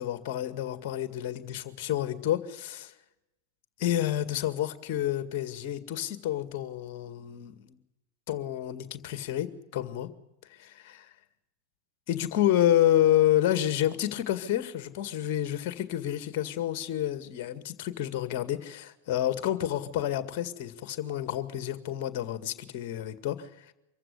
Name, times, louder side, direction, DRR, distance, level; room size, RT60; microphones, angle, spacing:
voice 1, 0.0-2.9 3.8-7.7 8.3-10.1 10.6-11.1 12.1-23.7, left 12 dB, 45° left, 11 dB, 2.0 m, -29 dB
25.0 x 15.0 x 8.1 m, 0.93 s
figure-of-eight pair, 90°, 0 cm